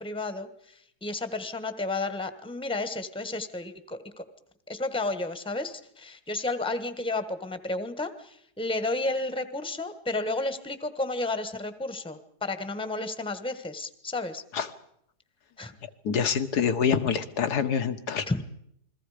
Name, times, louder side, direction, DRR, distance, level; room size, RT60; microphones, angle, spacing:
voice 1, 0.0-4.2 4.7-14.4 15.6-15.7 18.3-18.4, left 2 dB, 5° left, 11 dB, 1.3 m, -32 dB
voice 2, 16.0-18.3, left 7 dB, 75° left, 10 dB, 1.9 m, -26 dB
29.0 x 21.5 x 5.1 m, 0.72 s
omnidirectional pair, 1.7 m